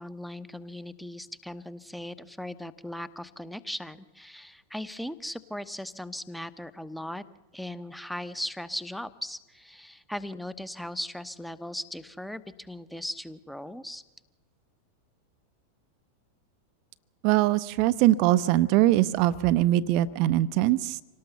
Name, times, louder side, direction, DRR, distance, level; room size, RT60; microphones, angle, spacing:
voice 1, 0.0-7.2 7.5-14.0, left 1 dB, ahead, 15 dB, 1.0 m, -38 dB
voice 2, 17.2-21.0, right 15 dB, 45° right, 16 dB, 0.7 m, -22 dB
26.5 x 18.0 x 6.9 m, 1.1 s
figure-of-eight pair, 90°, 0 cm